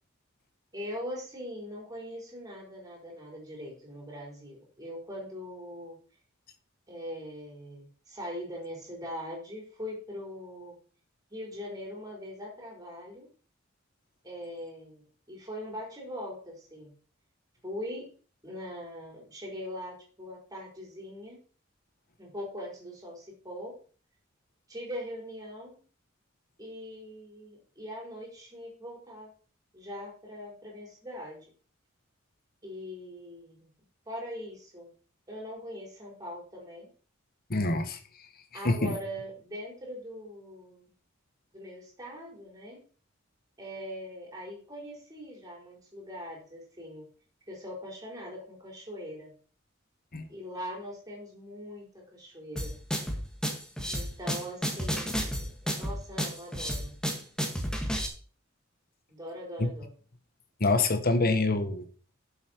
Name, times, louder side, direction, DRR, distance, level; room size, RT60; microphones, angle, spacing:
voice 1, 0.7-6.0 6.9-10.7 11.3-13.3 14.2-16.9 17.6-18.0 18.4-21.4 22.2-23.8 24.7-25.8 26.6-29.3 29.7-31.5 32.6-33.7 34.1-34.9 35.3-36.9 38.5-40.8 41.5-42.8 43.6-47.1 47.5-49.3 50.3-52.8 53.9-56.9 59.1-59.9, equal, 20° right, -2 dB, 4.8 m, -41 dB
voice 2, 37.5-38.0 38.6-39.0 50.1-50.3 59.6-59.7 60.6-61.8, left 2 dB, 50° left, 9 dB, 1.3 m, -26 dB
sound 1, 52.6-58.1, equal, 5° left, 1.8 m, -31 dB
11.5 x 7.1 x 4.6 m, 0.40 s
head